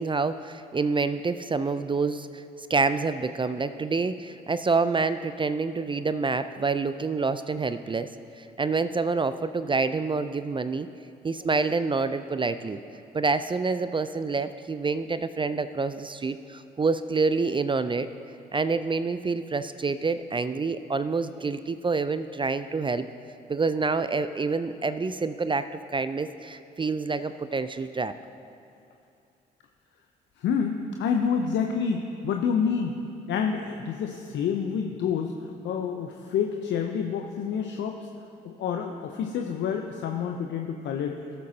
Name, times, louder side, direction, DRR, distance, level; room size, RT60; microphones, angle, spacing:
voice 1, 0.0-2.4 2.7-8.1 8.4-10.9 11.2-12.8 13.1-18.1 18.5-23.0 23.5-28.1, right 4 dB, 25° right, 12 dB, 0.5 m, -27 dB
voice 2, 30.4-33.0 33.3-38.1 38.4-41.2, left 6 dB, 65° left, 4 dB, 0.7 m, -28 dB
17.5 x 7.6 x 2.8 m, 2.5 s
hypercardioid pair, 45°, 21 cm